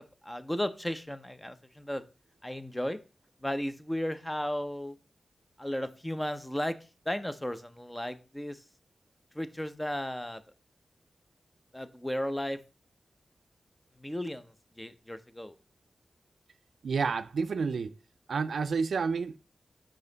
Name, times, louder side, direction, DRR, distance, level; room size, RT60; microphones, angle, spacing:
voice 1, 0.2-2.0 2.4-3.0 3.4-5.0 5.6-6.8 7.1-8.6 9.3-10.4 11.7-12.6 14.0-15.5, left 1 dB, 10° left, 0.7 m, -34 dB
voice 2, 16.8-17.9 18.3-19.4, right 5 dB, 90° right, 0.4 m, -29 dB
5.4 x 5.0 x 3.9 m
wide cardioid pair, 75°, 0 cm